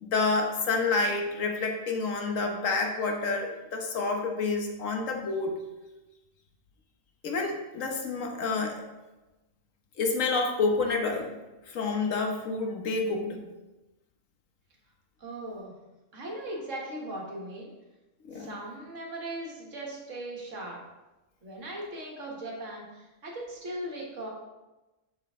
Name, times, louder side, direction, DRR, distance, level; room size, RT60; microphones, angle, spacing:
voice 1, 0.0-5.6 7.2-8.8 10.0-11.4 11.7-13.4 18.2-18.5, left 3 dB, 85° left, 2 dB, 1.4 m, -28 dB
voice 2, 15.2-15.7 16.1-17.7 18.3-20.8 21.4-24.3, right 1 dB, 75° right, -2 dB, 1.9 m, -38 dB
6.7 x 5.9 x 3.7 m, 1.1 s
omnidirectional pair, 1.3 m